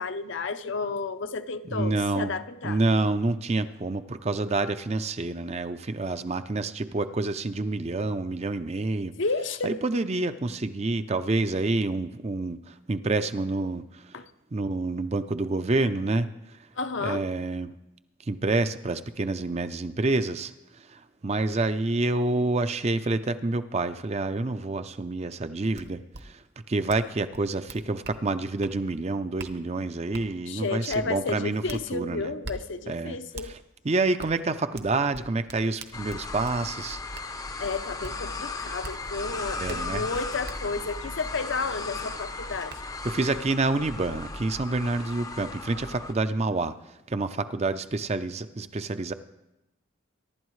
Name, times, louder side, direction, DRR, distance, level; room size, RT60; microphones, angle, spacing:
voice 1, 0.0-2.8 9.2-9.8 14.1-14.3 16.8-17.2 30.5-33.5 37.6-42.7, left 4 dB, 60° left, 10 dB, 0.7 m, -32 dB
voice 2, 1.7-2.3 2.6-9.1 9.6-14.2 14.5-16.3 17.0-17.7 18.3-26.4 26.7-31.6 31.9-32.3 32.9-33.2 33.4-33.6 33.8-37.0 39.6-40.0 43.0-46.7 47.1-49.1, right 2 dB, 30° right, 11 dB, 0.5 m, -28 dB
sound 1, 25.7-25.8 26.1-26.2 26.9-27.1 27.3-28.2 28.6-28.8 29.4-29.5 30.1-30.3 30.9-31.0 31.7-31.8 32.4-32.6 33.3-33.5 34.2-34.3 34.7-36.6 37.1-37.3 38.0-38.1 38.8-39.0 39.7-39.8 40.4-40.6 42.1-42.2 42.7-42.8, right 3 dB, 50° right, 1.0 m, -41 dB
sound 2, 35.9-46.1, left 3 dB, 15° left, 0.6 m, -36 dB
23.5 x 11.5 x 3.2 m, 0.92 s
head